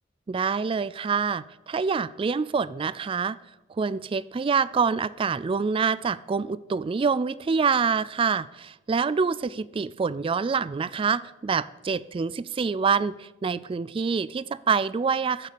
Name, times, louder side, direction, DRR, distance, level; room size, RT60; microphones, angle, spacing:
voice 1, 0.3-3.4 3.8-15.5, right 5 dB, 30° right, 19 dB, 0.3 m, -26 dB
15.0 x 6.6 x 6.8 m, 1.0 s
head